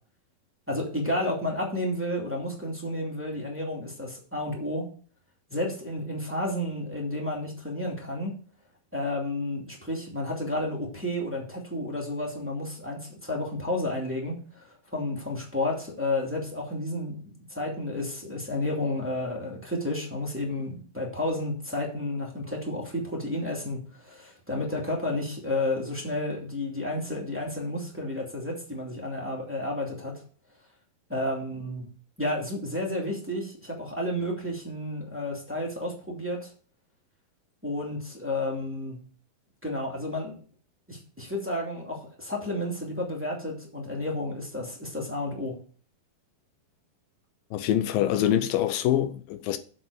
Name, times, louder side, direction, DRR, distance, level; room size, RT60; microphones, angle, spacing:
voice 1, 0.7-4.9 5.5-8.3 8.9-30.2 31.1-31.9 32.2-36.5 37.6-39.0 39.6-40.3 40.9-45.6, left 1 dB, 5° right, 1.6 m, -31 dB
voice 2, 47.5-49.6, left 11 dB, 80° left, 2.4 m, -25 dB
7.9 x 6.1 x 6.4 m
omnidirectional pair, 4.2 m